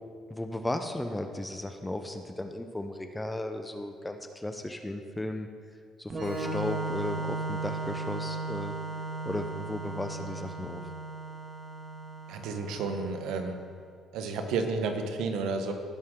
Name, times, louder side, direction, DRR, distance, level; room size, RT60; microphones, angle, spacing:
voice 1, 0.3-5.5 6.0-8.8 9.2-10.8, left 1 dB, 10° left, 6 dB, 0.8 m, -35 dB
Organ, 6.1-13.6, right 3 dB, 40° right, 1.6 m, -36 dB
voice 2, 12.3-13.6 14.1-15.7, right 4 dB, 80° right, 6 dB, 1.1 m, -31 dB
17.5 x 6.4 x 3.8 m, 2.2 s
supercardioid pair, 75°, 0 cm